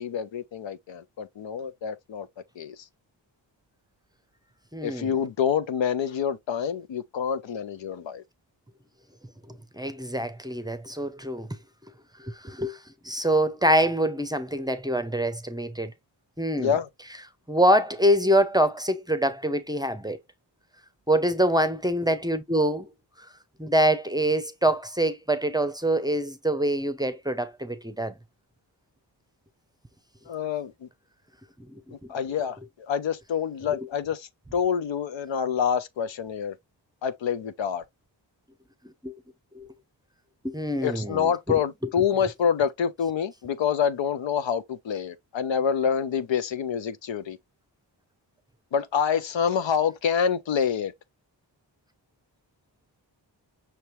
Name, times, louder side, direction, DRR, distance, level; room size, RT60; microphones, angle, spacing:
voice 1, 0.0-2.3 2.6-2.8 4.8-8.2 16.6-16.9 30.3-30.9 32.1-32.6 32.9-36.6 37.0-37.8 40.8-47.4 48.7-50.9, left 7 dB, 75° left, 0.7 m, -27 dB
voice 2, 4.7-5.1 9.8-11.5 12.2-12.8 13.0-15.9 16.4-16.8 17.5-20.2 21.1-22.9 23.6-28.1 31.7-31.8 39.0-39.1 39.5-39.7 40.4-41.6, right 1 dB, 10° right, 0.6 m, -25 dB
5.8 x 2.8 x 3.1 m
cardioid pair, 65°, 45 cm